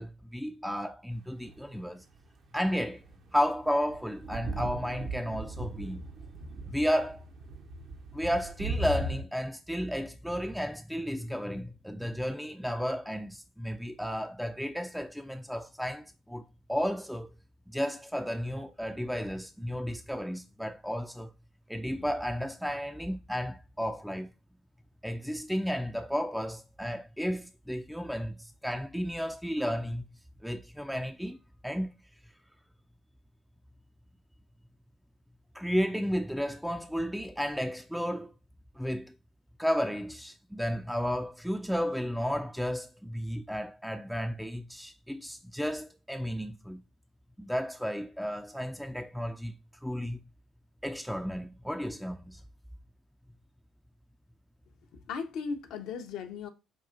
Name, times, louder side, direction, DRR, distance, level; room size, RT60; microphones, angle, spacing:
voice 1, 0.0-2.0 2.5-3.0 3.3-6.0 6.7-7.2 8.1-17.3 17.7-21.3 21.7-24.3 25.0-30.1 30.4-31.4 31.6-31.9 35.5-38.3 38.8-39.1 39.6-46.8 47.4-49.5 49.8-50.2 50.8-52.4, equal, ahead, 0.3 m, -33 dB
sound 1, 1.4-1.9 2.8-9.2, right 1 dB, 55° right, 0.6 m, -38 dB
voice 2, 54.9-56.5, left 5 dB, 65° left, 0.6 m, -37 dB
5.3 x 2.4 x 2.5 m
hypercardioid pair, 55°, 0 cm